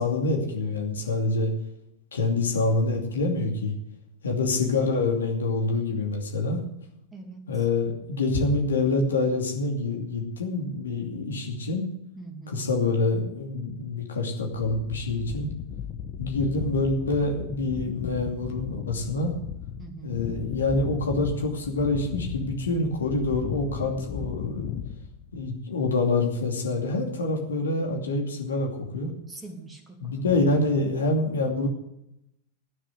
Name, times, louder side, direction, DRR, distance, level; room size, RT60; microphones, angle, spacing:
voice 1, 0.0-1.5 2.1-3.7 4.2-6.6 7.5-11.8 12.5-15.5 16.2-19.3 20.0-24.7 25.3-29.1 30.0-31.7, left 2 dB, 70° left, 2 dB, 2.6 m, -26 dB
voice 2, 7.1-7.7 12.2-12.6 19.8-20.2 29.3-30.2, right 3 dB, 10° right, 3 dB, 2.4 m, -43 dB
sound 1, 14.5-25.6, left 9 dB, 40° left, 1.1 m, -36 dB
12.5 x 9.4 x 7.8 m, 0.81 s
figure-of-eight pair, 90°, 0 cm